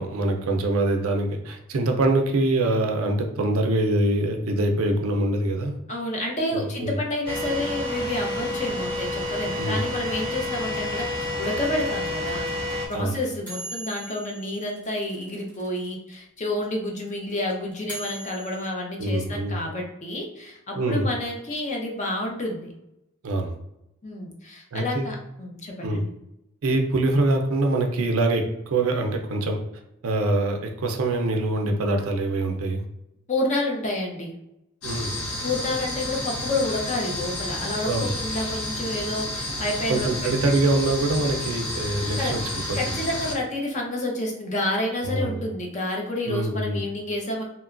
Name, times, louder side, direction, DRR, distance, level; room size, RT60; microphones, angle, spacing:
voice 1, 0.0-5.8 6.5-6.9 9.6-9.8 12.9-13.2 19.0-19.6 20.7-21.1 23.2-23.5 24.7-25.1 25.8-26.0 26.6-29.6 30.0-32.8 34.8-35.2 37.9-38.1 39.9-42.9 45.1-45.4 46.3-46.8, right 2 dB, 75° right, 4 dB, 0.5 m, -24 dB
voice 2, 5.9-12.5 12.9-22.7 24.0-26.1 33.3-34.3 35.4-40.1 42.2-42.4 42.7-47.4, left 1 dB, 35° left, 0 dB, 0.5 m, -29 dB
sound 1, 7.3-12.9, left 1 dB, 25° right, 0.5 m, -29 dB
sound 2, 10.7-15.9 16.1-16.2 16.4-18.7, right 2 dB, 5° left, 1.1 m, -40 dB
sound 3, 34.8-43.4, left 1 dB, 90° left, 0.8 m, -31 dB
2.9 x 2.2 x 2.4 m, 0.86 s
head